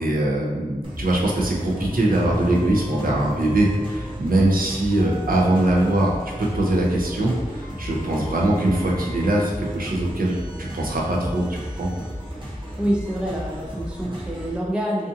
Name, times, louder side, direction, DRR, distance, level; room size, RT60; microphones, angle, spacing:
voice 1, 0.0-11.9, right 1 dB, 75° right, -2 dB, 0.5 m, -22 dB
sound 1, 0.8-14.6, equal, 35° right, 0.8 m, -34 dB
sound 2, 1.8-11.2, left 1 dB, 45° left, 0.9 m, -38 dB
sound 3, 2.4-4.2 5.0-6.8 7.6-9.5 10.2-12.1 12.9-13.2, left 1 dB, 20° left, 0.7 m, -43 dB
voice 2, 12.8-15.1, equal, 5° right, -2 dB, 0.4 m, -26 dB
2.5 x 2.4 x 2.6 m, 1.3 s
wide cardioid pair, 50°, 15 cm